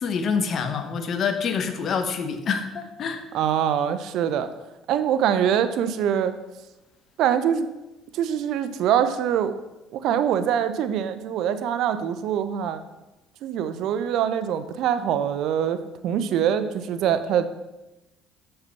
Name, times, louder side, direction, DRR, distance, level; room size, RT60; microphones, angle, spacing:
voice 1, 0.0-3.2, left 6 dB, 50° left, 8 dB, 1.0 m, -26 dB
voice 2, 3.3-4.5 4.9-6.3 7.2-7.7 8.1-9.6 9.9-12.8 13.4-15.8 16.0-17.5, right 9 dB, 65° right, 11 dB, 0.6 m, -24 dB
6.7 x 5.5 x 5.8 m, 1.0 s
supercardioid pair, 80°, 0 cm